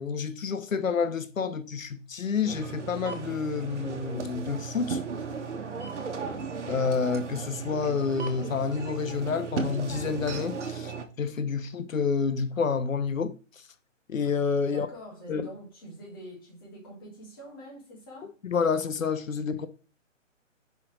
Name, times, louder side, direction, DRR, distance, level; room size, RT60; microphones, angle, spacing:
voice 1, 0.0-5.0 6.7-10.9 11.2-13.4 14.1-14.9 15.3-15.5 18.4-19.7, left 5 dB, 85° left, 1.0 m, -29 dB
sound 1, 2.4-11.1, right 5 dB, 60° right, 1.4 m, -36 dB
voice 2, 14.6-18.3, right 1 dB, 15° left, 1.8 m, -45 dB
5.8 x 3.9 x 6.1 m
hypercardioid pair, 175°, 39 cm